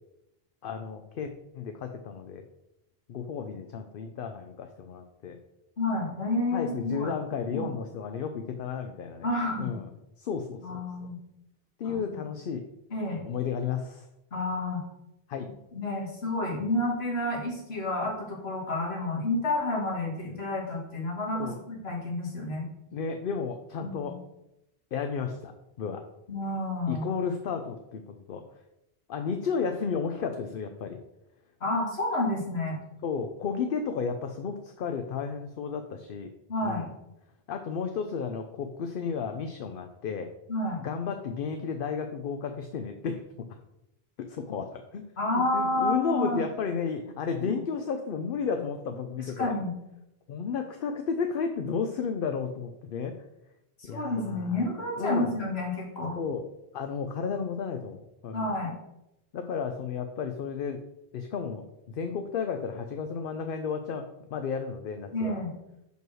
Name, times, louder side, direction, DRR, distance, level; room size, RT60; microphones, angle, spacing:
voice 1, 0.6-2.5 3.1-5.4 6.5-9.3 9.6-9.9 10.2-10.8 11.8-12.7 13.2-14.1 15.3-15.5 21.3-21.6 22.9-24.2 24.9-25.5 25.8-26.1 26.9-28.4 29.1-31.0 33.0-36.3 36.6-36.9 37.5-40.3 40.8-43.5 44.2-45.1 45.3-49.5 50.3-53.2 53.8-54.6 55.0-55.3 56.2-56.5 56.7-58.5 59.3-60.8 61.1-65.4, left 6 dB, 65° left, 6 dB, 0.7 m, -33 dB
voice 2, 5.8-7.1 7.5-7.7 9.2-9.7 10.6-11.2 11.8-12.0 12.9-13.2 14.3-14.8 15.7-22.7 23.8-24.1 26.3-27.1 31.6-32.8 36.5-36.8 40.5-40.8 45.2-46.4 47.4-47.6 49.4-49.7 53.8-56.2 58.3-58.8 65.1-65.6, left 2 dB, 80° left, -2 dB, 2.0 m, -30 dB
5.5 x 4.6 x 6.1 m, 0.88 s
omnidirectional pair, 1.0 m